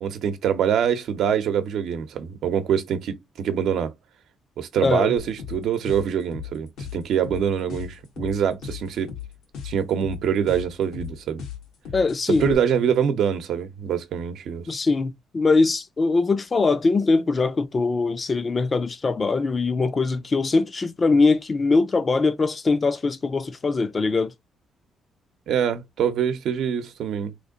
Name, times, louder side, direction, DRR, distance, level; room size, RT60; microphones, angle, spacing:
voice 1, 0.0-3.9 4.6-9.1 9.6-11.4 12.4-14.7 25.5-27.3, right 8 dB, 75° right, 0.8 m, -24 dB
voice 2, 4.8-5.1 11.9-12.6 14.7-24.3, left 3 dB, 35° left, 0.5 m, -22 dB
sound 1, 5.2-12.5, left 8 dB, 85° left, 1.4 m, -36 dB
3.2 x 2.6 x 3.8 m
cardioid pair, 90°, 0 cm